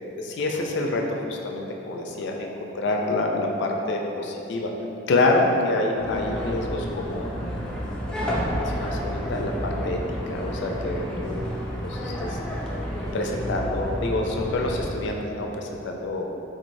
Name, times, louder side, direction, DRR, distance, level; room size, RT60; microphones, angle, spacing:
voice 1, 0.2-4.7 5.1-7.3 8.1-10.0 10.3-11.5 11.8-12.4 13.1-16.3, left 2 dB, 65° left, 2 dB, 0.4 m, -27 dB
sound 1, 6.0-14.9, equal, 5° left, 0.4 m, -30 dB
3.8 x 3.1 x 2.6 m, 2.9 s
head